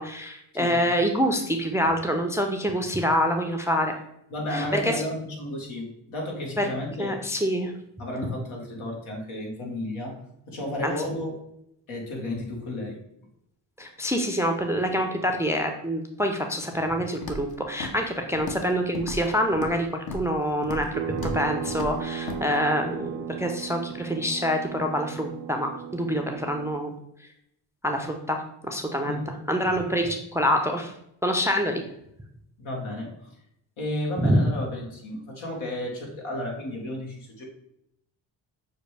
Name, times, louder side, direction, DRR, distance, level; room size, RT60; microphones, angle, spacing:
voice 1, 0.0-3.9 4.5-4.9 6.6-6.7 7.0-7.7 10.8-10.9 13.8-26.9 27.8-28.4 28.6-29.2 29.5-30.9 31.2-31.8 34.2-34.4, equal, 5° right, 4 dB, 0.5 m, -26 dB
voice 2, 0.5-0.9 4.3-7.2 8.0-10.2 10.5-11.5 11.9-13.0 29.0-29.3 32.6-33.3 33.8-37.4, left 1 dB, 70° left, -1 dB, 1.5 m, -33 dB
Walk footsteps, 17.2-17.5 17.8-18.1 18.3-18.7 18.9-19.8 20.1-20.3 20.6-20.9 21.2-21.4 21.7-21.9 22.3-22.4, left 2 dB, 45° left, 0.9 m, -34 dB
sound 1, 20.9-26.7, right 8 dB, 85° right, 0.6 m, -36 dB
6.5 x 2.2 x 3.2 m, 0.76 s
supercardioid pair, 50°, 50 cm